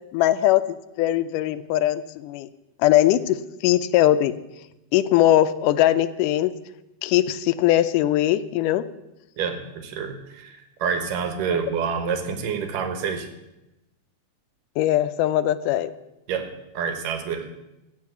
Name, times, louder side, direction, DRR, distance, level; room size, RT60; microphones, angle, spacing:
voice 1, 0.1-0.6 1.0-2.5 2.8-4.4 4.9-6.5 7.0-8.9 14.8-15.9, left 13 dB, 85° left, 13 dB, 2.1 m, -20 dB
voice 2, 9.4-13.3 16.3-17.7, right 6 dB, 90° right, 7 dB, 2.8 m, -28 dB
14.5 x 5.3 x 8.2 m, 0.94 s
omnidirectional pair, 3.7 m